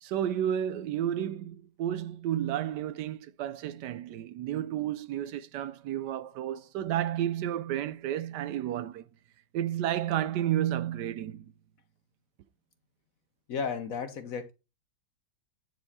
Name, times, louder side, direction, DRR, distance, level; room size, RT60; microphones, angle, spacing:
voice 1, 0.0-9.1 9.5-11.4, right 11 dB, 75° right, 1.1 m, -31 dB
voice 2, 13.5-14.5, left 5 dB, 55° left, 1.1 m, -33 dB
9.3 x 4.6 x 4.1 m
omnidirectional pair, 1.9 m